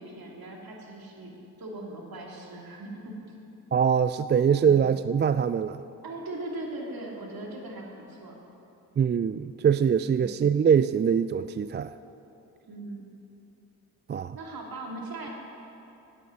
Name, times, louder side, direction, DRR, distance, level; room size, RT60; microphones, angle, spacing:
voice 1, 0.0-1.3 1.6-3.4 4.6-5.1 6.0-8.4 12.7-13.0 14.3-15.3, right 2 dB, 55° right, -1 dB, 2.8 m, -39 dB
voice 2, 3.7-5.8 9.0-11.9 14.1-14.4, right 7 dB, 30° right, 13 dB, 0.3 m, -23 dB
9.2 x 8.8 x 9.4 m, 2.9 s
supercardioid pair, 45°, 41 cm